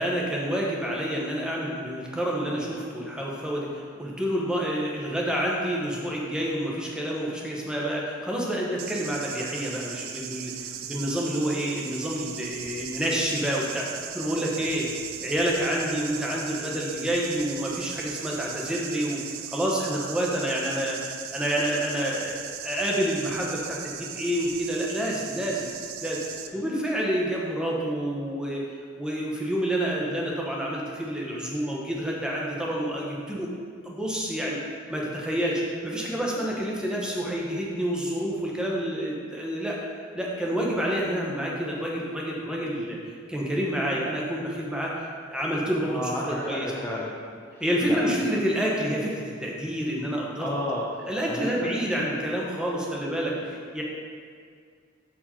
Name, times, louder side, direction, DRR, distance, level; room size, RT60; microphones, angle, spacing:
voice 1, 0.0-10.5 10.8-13.9 14.1-14.9 15.2-19.2 19.5-25.7 26.0-26.2 26.5-28.6 29.0-33.5 33.8-39.8 40.1-43.0 43.3-46.1 46.4-46.7 47.6-50.5 51.0-53.8, equal, 5° right, -3 dB, 1.0 m, -28 dB
sound 1, 8.8-26.5, right 9 dB, 90° right, 0.5 m, -38 dB
voice 2, 45.9-47.1 47.5-48.3 50.4-50.8 51.3-51.5, left 1 dB, 15° left, -5 dB, 0.6 m, -33 dB
7.1 x 4.8 x 4.3 m, 2.1 s
head